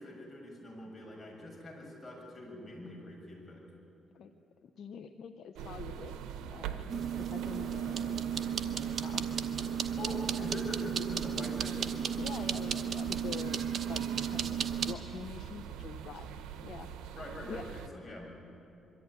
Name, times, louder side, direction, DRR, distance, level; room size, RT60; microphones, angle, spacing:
voice 1, 0.0-3.6 10.0-12.1 17.1-18.3, left 1 dB, 25° left, -2 dB, 6.8 m, -44 dB
voice 2, 4.6-6.2 6.5-8.3 8.9-9.2 9.6-10.4 12.2-14.0 14.3-14.5 14.9-16.3 16.6-16.9 17.5-17.7, left 7 dB, 65° left, 6 dB, 0.8 m, -45 dB
sound 1, 5.6-17.9, right 8 dB, 90° right, 0.9 m, -44 dB
sound 2, 6.9-15.0, right 8 dB, 55° right, 1.0 m, -34 dB
23.0 x 14.0 x 9.6 m, 3.0 s
cardioid pair, 90°, 0 cm